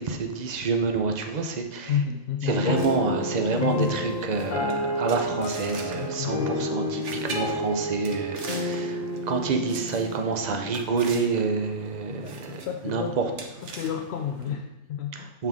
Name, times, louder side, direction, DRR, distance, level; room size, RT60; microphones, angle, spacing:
voice 1, 0.0-1.9 2.4-13.3 15.1-15.5, right 4 dB, 40° right, 4 dB, 0.7 m, -28 dB
voice 2, 1.9-2.9 3.6-3.9 5.9-6.7 12.2-12.4 12.7-13.2 13.7-15.3, left 8 dB, 65° left, 4 dB, 0.7 m, -30 dB
sound 1, 2.6-11.2, left 1 dB, 85° left, 1.5 m, -31 dB
sound 2, 2.7-14.5, right 3 dB, 60° right, 1.2 m, -42 dB
7.3 x 5.8 x 3.6 m, 0.95 s
omnidirectional pair, 1.4 m